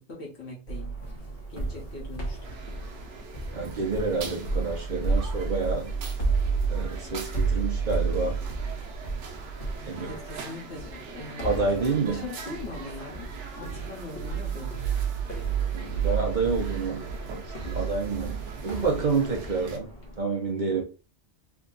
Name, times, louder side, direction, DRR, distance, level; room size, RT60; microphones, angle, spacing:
voice 1, 0.1-1.0 1.5-2.5 10.0-13.3 13.5-14.9, left 2 dB, 70° left, 1.6 m, -41 dB
sound 1, 0.7-20.2, right 4 dB, 50° left, 1.2 m, -32 dB
sound 2, 2.4-19.8, right 5 dB, 80° right, 1.0 m, -44 dB
voice 2, 3.5-5.9 6.7-8.4 9.8-10.1 11.4-12.2 15.7-17.0 17.3-19.9 20.2-20.8, right 4 dB, 50° right, 0.7 m, -28 dB
3.5 x 2.2 x 3.8 m
omnidirectional pair, 1.2 m